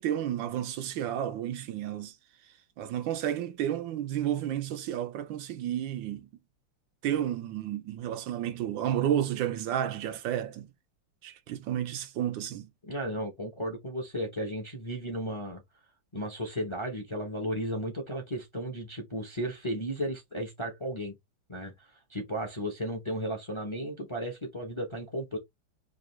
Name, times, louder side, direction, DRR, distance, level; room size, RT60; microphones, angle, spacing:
voice 1, 0.0-2.1 2.8-6.3 7.0-10.7 11.2-12.7, right 10 dB, 85° right, 1.5 m, -31 dB
voice 2, 12.8-15.6 16.1-21.1 21.5-25.4, equal, 25° left, 0.6 m, -34 dB
5.0 x 2.5 x 3.2 m
omnidirectional pair, 2.0 m